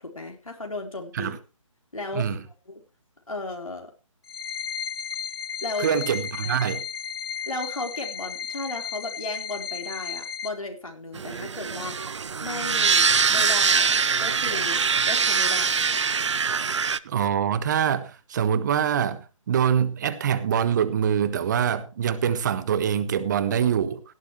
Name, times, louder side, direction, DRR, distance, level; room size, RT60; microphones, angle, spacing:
voice 1, 0.0-1.4 1.9-2.3 2.7-2.8 3.3-3.9 5.6-6.0 6.4-6.5 7.5-12.0 12.4-16.1, left 2 dB, 85° left, 2 dB, 4.0 m, -35 dB
sound 1, 4.2-10.5, left 7 dB, 45° left, 1.2 m, -34 dB
voice 2, 5.8-6.8 17.0-24.0, right 8 dB, 35° right, 14 dB, 1.3 m, -24 dB
sound 2, 11.1-17.0, right 5 dB, 60° right, 0.7 m, -23 dB
17.5 x 12.0 x 3.1 m, 0.31 s
figure-of-eight pair, 145°, 17 cm